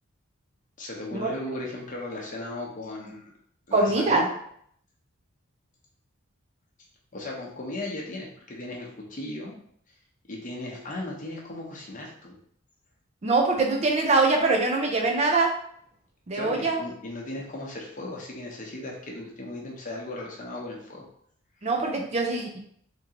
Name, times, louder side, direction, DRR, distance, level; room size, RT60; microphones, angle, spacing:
voice 1, 0.8-3.3 3.7-4.3 7.1-9.6 10.3-12.3 16.3-21.1, left 1 dB, 40° left, -2 dB, 0.8 m, -36 dB
voice 2, 3.7-4.2 13.2-15.5 16.3-16.8 21.6-22.6, right 3 dB, 30° right, 2 dB, 0.4 m, -23 dB
3.6 x 2.9 x 2.9 m, 0.65 s
head